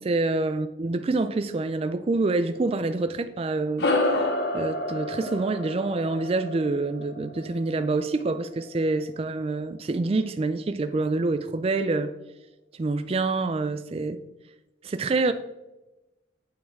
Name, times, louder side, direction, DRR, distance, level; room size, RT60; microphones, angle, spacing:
voice 1, 0.0-3.9 4.2-4.3 4.5-12.1 12.7-14.2 14.8-15.3, right 3 dB, 30° right, 0.3 m, -26 dB
sound 1, 3.8-8.5, left 2 dB, 60° left, 1.1 m, -29 dB
8.6 x 7.6 x 3.5 m
head